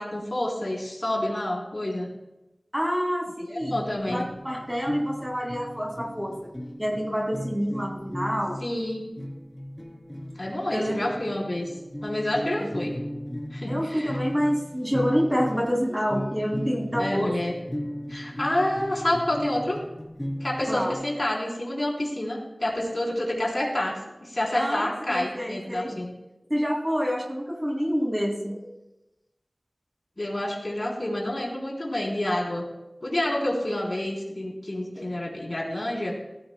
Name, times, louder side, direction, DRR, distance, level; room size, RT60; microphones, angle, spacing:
voice 1, 0.0-2.1 3.4-4.2 8.6-9.0 10.4-11.7 12.0-12.9 13.5-14.2 17.0-17.5 18.1-19.8 20.4-24.0 24.2-26.1 30.2-32.6 33.0-36.1, left 1 dB, 45° left, -2 dB, 3.6 m, -28 dB
voice 2, 2.7-3.8 4.1-6.5 6.8-8.6 10.7-11.1 12.6-12.7 13.7-17.4 20.7-20.9 24.5-26.0 26.5-28.8 35.0-35.1, equal, 10° right, 0 dB, 2.4 m, -27 dB
sound 1, 3.6-20.9, equal, 15° left, 2.8 m, -36 dB
17.0 x 14.5 x 2.2 m, 0.97 s
wide cardioid pair, 55°, 0 cm